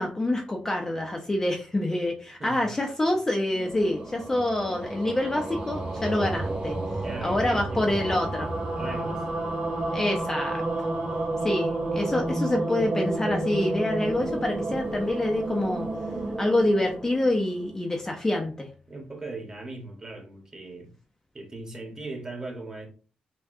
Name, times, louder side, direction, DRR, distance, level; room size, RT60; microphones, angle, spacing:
voice 1, 0.0-6.8 7.2-8.5 9.9-10.9 11.4-15.9 16.4-18.7, left 1 dB, 15° left, 0.5 m, -26 dB
voice 2, 2.4-2.7 7.0-8.2 8.7-9.2 18.9-20.9 21.3-22.9, right 2 dB, 25° right, 1.3 m, -39 dB
sound 1, 3.4-17.9, right 2 dB, 55° right, 1.8 m, -31 dB
5.7 x 2.2 x 2.7 m
cardioid pair, 120°, 3 cm